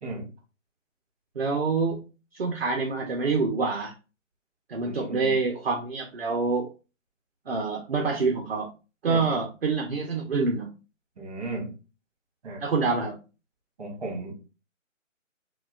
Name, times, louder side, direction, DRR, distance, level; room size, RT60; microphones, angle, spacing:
voice 1, 1.4-2.0 2.3-3.9 4.7-6.7 7.5-8.7 9.0-10.7 12.6-13.2, right 4 dB, 50° right, 3 dB, 0.5 m, -26 dB
voice 2, 4.8-5.3 9.1-9.4 11.2-11.7 12.4-12.6 13.8-14.3, right 2 dB, 30° right, 0 dB, 1.2 m, -35 dB
4.3 x 2.2 x 2.3 m, 0.32 s
hypercardioid pair, 165°, 39 cm